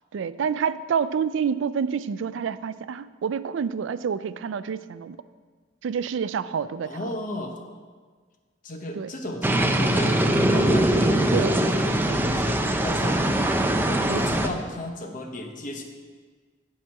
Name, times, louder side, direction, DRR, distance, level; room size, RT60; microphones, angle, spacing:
voice 1, 0.1-5.2 5.8-7.1 9.0-9.1 11.3-11.6 14.1-14.2, right 6 dB, 85° right, 15 dB, 0.4 m, -28 dB
voice 2, 6.8-7.5 8.6-13.2 13.8-15.8, left 1 dB, 45° left, 4 dB, 0.9 m, -34 dB
sound 1, 9.4-14.5, right 1 dB, 10° right, 0.5 m, -22 dB
8.6 x 7.8 x 4.7 m, 1.5 s
head